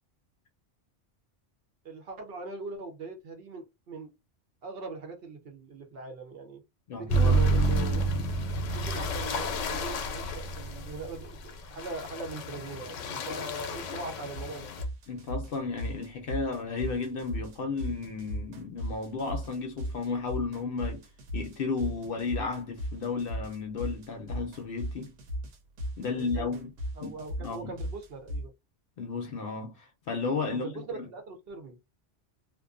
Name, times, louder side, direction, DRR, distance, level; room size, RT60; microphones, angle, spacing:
voice 1, 1.8-4.1 4.6-6.6 7.0-8.1 8.7-14.7 26.1-26.6 27.0-28.5 30.5-31.8, right 3 dB, 60° right, 0.8 m, -41 dB
voice 2, 6.9-7.4 15.1-21.0 21.3-25.1 26.0-26.7 27.0-27.1 27.4-27.7 29.0-31.1, left 4 dB, 60° left, 0.6 m, -33 dB
sound 1, 7.1-14.8, right 2 dB, 85° left, 0.9 m, -29 dB
sound 2, 14.3-28.5, equal, 85° right, 1.0 m, -36 dB
2.4 x 2.2 x 2.4 m
omnidirectional pair, 1.2 m